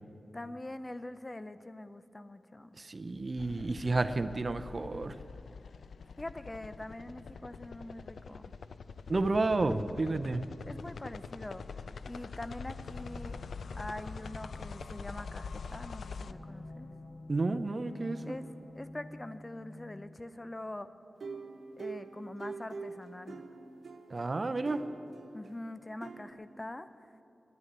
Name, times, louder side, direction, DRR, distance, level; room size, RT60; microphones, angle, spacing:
voice 1, 0.3-2.8 6.2-8.5 10.6-13.4 13.8-16.9 18.3-18.5 18.7-20.9 21.8-23.4 25.3-26.9, left 1 dB, 25° left, 12 dB, 0.6 m, -44 dB
voice 2, 2.8-5.1 9.1-10.4 17.3-18.4 24.1-24.8, right 3 dB, 50° right, 11 dB, 0.6 m, -31 dB
sound 1, 3.4-16.3, left 5 dB, 80° left, 0.4 m, -44 dB
sound 2, 12.7-20.0, left 1 dB, 65° left, 2.1 m, -49 dB
sound 3, 21.2-24.2 24.7-25.5 26.0-26.3, right 4 dB, 75° right, 1.2 m, -44 dB
11.0 x 9.8 x 9.7 m, 2.7 s
cardioid pair, 45°, 0 cm